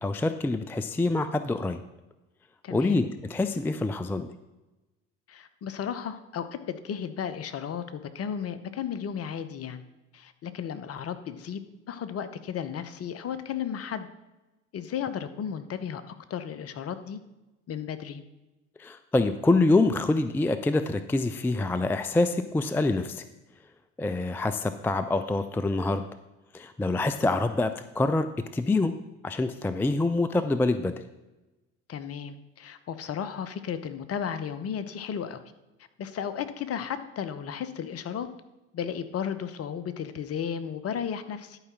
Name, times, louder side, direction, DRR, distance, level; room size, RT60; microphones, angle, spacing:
voice 1, 0.0-1.8 2.7-4.3 18.8-23.2 24.0-26.1 26.5-28.3 28.5-28.9 29.2-31.0, left 2 dB, 5° left, 11 dB, 0.4 m, -26 dB
voice 2, 2.6-3.0 5.3-9.8 10.1-11.6 11.9-14.1 14.7-17.2 17.7-18.2 31.9-35.4 36.0-38.3 38.7-41.6, left 8 dB, 40° left, 11 dB, 0.9 m, -34 dB
11.0 x 4.8 x 5.9 m, 1.0 s
hypercardioid pair, 60°, 36 cm